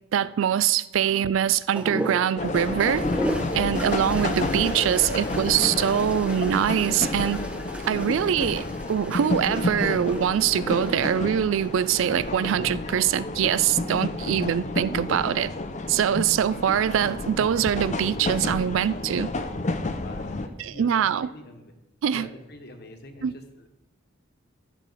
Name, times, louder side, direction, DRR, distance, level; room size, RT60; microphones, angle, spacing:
voice 1, 0.1-3.1 3.5-7.4 7.9-15.5 15.9-19.3 20.8-21.3 22.0-22.3 23.2-23.3, right 9 dB, 70° right, 0.3 m, -23 dB
sound 1, 1.7-12.4 13.6-14.2, right 1 dB, 5° right, 0.7 m, -35 dB
sound 2, 2.4-20.5, left 2 dB, 35° left, 0.6 m, -30 dB
voice 2, 20.0-21.7 22.1-23.7, left 1 dB, 50° left, 1.2 m, -45 dB
14.0 x 6.3 x 4.1 m
head